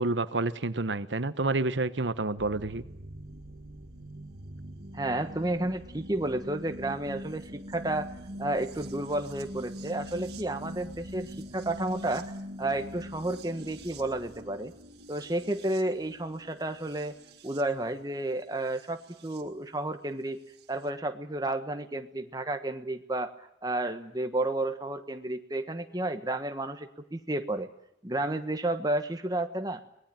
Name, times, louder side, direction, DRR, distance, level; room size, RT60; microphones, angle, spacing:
voice 1, 0.0-2.8, right 2 dB, 85° right, 13 dB, 1.1 m, -29 dB
sound 1, 2.4-19.4 20.6-20.7, equal, 60° right, 2.0 m, -43 dB
voice 2, 4.9-8.1 8.4-12.3 12.6-14.7 15.1-17.1 17.4-20.4 20.7-23.3 23.6-27.7 28.0-29.8, right 1 dB, 20° right, 7 dB, 1.4 m, -31 dB
24.0 x 19.5 x 8.9 m, 0.79 s
head